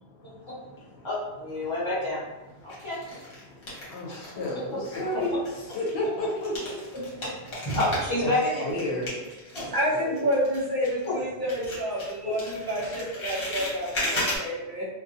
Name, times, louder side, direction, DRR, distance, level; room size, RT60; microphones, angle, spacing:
voice 1, 0.2-1.1 1.6-1.7 2.6-2.9 3.4-6.9 8.2-8.3 8.6-9.3 9.6-10.1 14.3-14.9, left 1 dB, 80° left, -1 dB, 0.9 m, -33 dB
voice 2, 1.0-2.2 2.6-3.0 4.1-4.2 5.1-5.2 7.2-8.7, left 1 dB, 30° left, -9 dB, 1.1 m, -28 dB
sound 1, 1.5-2.1 2.7-4.6 4.8-11.2 11.5-14.4, left 1 dB, 60° left, 1.1 m, -35 dB
voice 3, 9.7-14.9, equal, 50° right, -7 dB, 0.9 m, -29 dB
2.6 x 2.2 x 2.5 m, 1.0 s
omnidirectional pair, 1.1 m